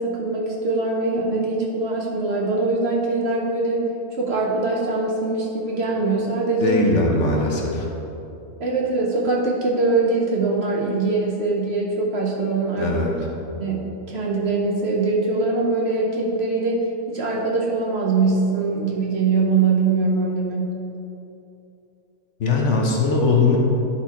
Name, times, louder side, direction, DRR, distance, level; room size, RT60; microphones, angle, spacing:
voice 1, 0.0-3.8 4.2-6.8 8.6-12.9 13.6-16.8 17.1-20.8, right 3 dB, 55° right, -2 dB, 0.9 m, -22 dB
voice 2, 6.6-7.9 12.8-13.1 22.4-23.6, left 3 dB, 55° left, -1 dB, 1.2 m, -20 dB
10.5 x 4.4 x 4.2 m, 2.8 s
omnidirectional pair, 1.5 m